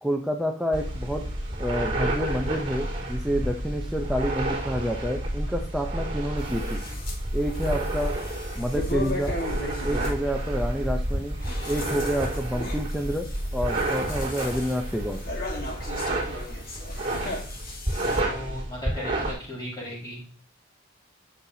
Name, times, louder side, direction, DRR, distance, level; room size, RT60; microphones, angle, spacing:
voice 1, 0.0-1.2 1.6-6.8 7.3-8.1 8.5-9.3 9.8-11.4 11.7-13.3 13.5-15.2, equal, ahead, 1 dB, 0.6 m, -28 dB
sound 1, 0.7-19.3, right 1 dB, 30° right, 3.8 m, -30 dB
sound 2, 6.4-7.2 7.5-10.1 11.2-18.2, left 2 dB, 45° left, 1.6 m, -37 dB
voice 2, 18.2-20.3, left 1 dB, 20° left, -6 dB, 5.0 m, -36 dB
11.5 x 7.3 x 2.8 m, 0.43 s
head